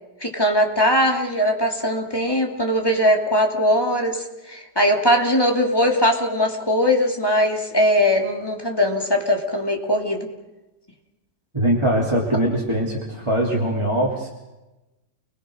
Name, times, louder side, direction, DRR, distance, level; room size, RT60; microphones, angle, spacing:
voice 1, 0.2-10.3, equal, 15° left, 2 dB, 2.7 m, -20 dB
voice 2, 11.5-14.3, right 1 dB, 15° right, -4 dB, 3.2 m, -21 dB
29.5 x 21.0 x 6.5 m, 1.0 s
omnidirectional pair, 1.8 m